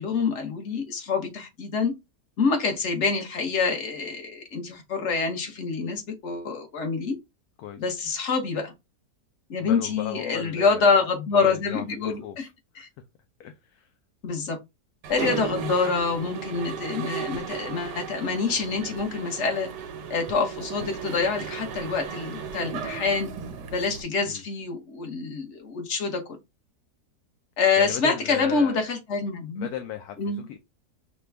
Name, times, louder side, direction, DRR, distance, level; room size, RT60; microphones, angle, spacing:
voice 1, 0.0-1.9 2.4-7.1 7.8-8.7 9.5-12.5 12.7-12.9 14.2-14.6 15.1-19.7 20.1-23.3 23.7-26.2 27.6-29.7 30.2-30.4, left 4 dB, 50° left, 1.3 m, -26 dB
voice 2, 9.6-11.0 11.3-12.9 13.4-13.9 15.6-15.7 24.3-24.4 27.8-28.8 29.6-30.6, left 10 dB, 70° left, 1.0 m, -36 dB
Mechanisms, 15.0-24.0, right 7 dB, 90° right, 1.4 m, -35 dB
5.9 x 2.3 x 3.3 m
omnidirectional pair, 1.8 m